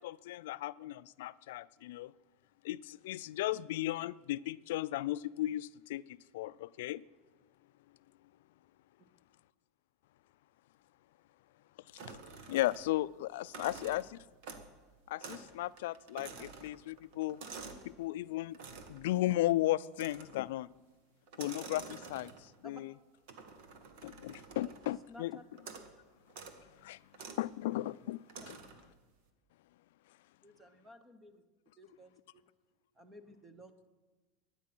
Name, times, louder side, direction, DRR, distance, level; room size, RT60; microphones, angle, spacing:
voice 1, 0.0-2.1 2.6-7.0 11.9-12.2 12.5-14.0 15.1-17.4 17.8-18.6 18.9-20.7 21.4-22.9 24.0-25.3 26.8-27.0 27.4-28.6, left 15 dB, 70° left, 18 dB, 0.4 m, -35 dB
sound 1, 12.0-13.0 13.4-14.8 15.2-15.5 15.8-17.9 18.5-19.0 19.9-20.5 21.3-22.6 23.3-25.0 25.6-25.9 26.3-26.6 27.1-27.4 28.3-28.9, right 4 dB, 55° right, 1.7 m, -49 dB
voice 2, 25.1-25.4 30.4-31.4 31.8-32.4 32.9-33.9, equal, 10° right, 9 dB, 1.0 m, -54 dB
22.5 x 9.6 x 6.1 m, 1.2 s
supercardioid pair, 170°, 0 cm